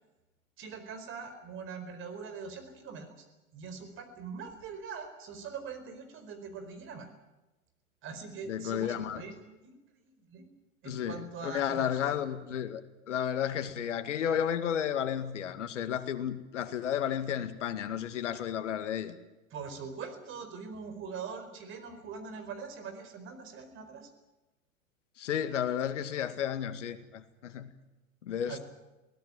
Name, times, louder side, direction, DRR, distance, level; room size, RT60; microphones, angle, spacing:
voice 1, 0.6-3.2 3.5-7.1 8.0-9.3 9.6-10.5 10.8-12.2 19.5-24.1 28.5-28.6, right 5 dB, 30° right, 8 dB, 4.5 m, -42 dB
voice 2, 8.5-9.2 10.8-12.8 13.1-19.2 25.2-27.7 28.2-28.6, left 9 dB, 60° left, 9 dB, 2.2 m, -32 dB
23.0 x 18.0 x 9.1 m, 1.0 s
figure-of-eight pair, 100°, 41 cm